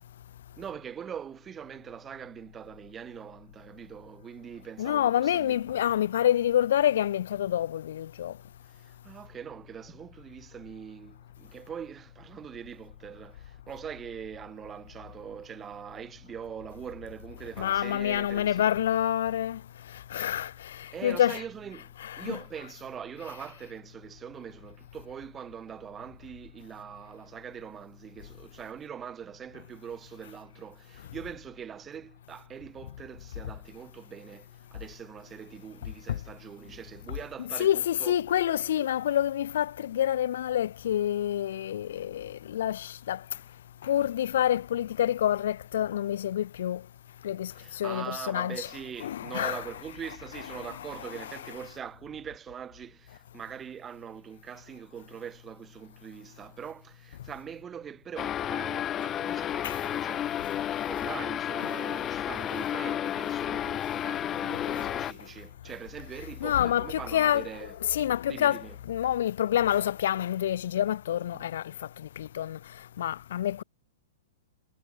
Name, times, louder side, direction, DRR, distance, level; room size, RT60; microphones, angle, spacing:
voice 1, 0.6-5.8 8.7-18.8 20.2-20.4 20.9-21.9 22.2-38.9 47.5-67.8 68.3-68.8 71.3-71.5, right 8 dB, 20° right, 5.5 m, -42 dB
voice 2, 4.8-8.4 17.6-19.6 19.9-21.4 22.0-22.3 36.1-36.2 37.6-43.2 43.8-46.8 47.2-48.6 49.0-49.6 59.6-59.8 64.5-64.9 66.4-67.4 67.9-72.6 73.0-73.6, left 11 dB, 70° left, 1.1 m, -27 dB
sound 1, 58.2-65.1, left 11 dB, 25° left, 4.1 m, -32 dB
hypercardioid pair, 125°, 0 cm